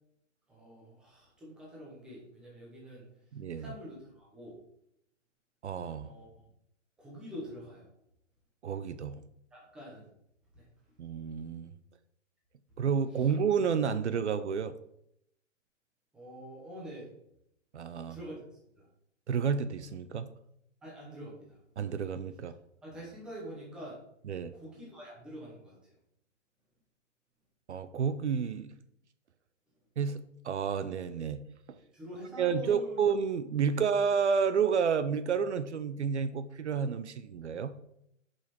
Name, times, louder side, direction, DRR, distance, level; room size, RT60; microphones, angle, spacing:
voice 1, 0.5-3.1 3.5-4.5 6.0-6.3 7.0-7.9 9.5-10.1 10.5-10.6 16.1-17.1 18.0-18.4 18.8-18.9 20.8-21.6 22.8-24.0 24.5-25.8 31.9-33.0, equal, ahead, -5 dB, 0.9 m, -46 dB
voice 2, 3.3-3.7 5.6-6.1 8.6-9.3 11.0-11.7 12.8-14.7 17.7-18.2 19.3-20.3 21.8-22.5 24.3-24.5 27.7-28.7 30.0-31.4 31.7-31.8 32.4-37.7, right 6 dB, 65° right, 13 dB, 0.6 m, -30 dB
6.8 x 5.6 x 4.4 m, 0.76 s
hypercardioid pair, 165°, 37 cm